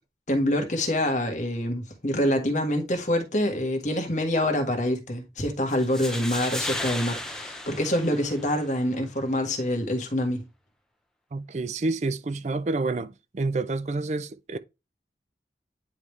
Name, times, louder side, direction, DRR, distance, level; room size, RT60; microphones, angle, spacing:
voice 1, 0.3-10.4, left 1 dB, 40° left, 1.5 m, -26 dB
sound 1, 5.7-8.7, left 1 dB, 5° left, 0.7 m, -34 dB
voice 2, 11.3-14.6, right 3 dB, 40° right, 0.4 m, -29 dB
9.6 x 3.4 x 3.2 m
head